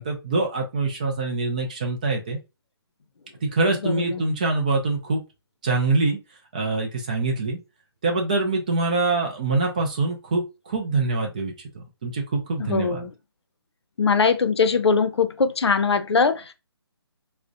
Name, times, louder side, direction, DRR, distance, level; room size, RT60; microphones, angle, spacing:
voice 1, 0.0-2.4 3.4-5.2 5.6-6.2 6.5-7.6 8.0-13.0, right 3 dB, 20° right, 0.3 m, -24 dB
voice 2, 3.8-4.2 12.7-13.1 14.0-16.5, left 5 dB, 85° left, 0.5 m, -21 dB
2.5 x 2.1 x 2.4 m
hypercardioid pair, 160°, 14 cm